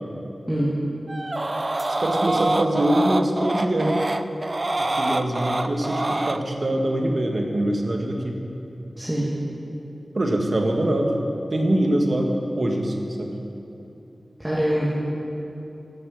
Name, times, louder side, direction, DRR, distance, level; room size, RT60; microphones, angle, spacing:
sound 1, 1.1-6.4, right 2 dB, 40° right, 0.4 m, -25 dB
voice 1, 1.9-4.0 4.8-8.4 10.1-11.2 11.5-13.4, right 1 dB, 55° right, 2 dB, 1.5 m, -23 dB
voice 2, 9.0-9.3 14.4-14.9, equal, 10° right, -9 dB, 2.4 m, -23 dB
11.0 x 7.2 x 8.4 m, 2.8 s
wide cardioid pair, 65°, 0 cm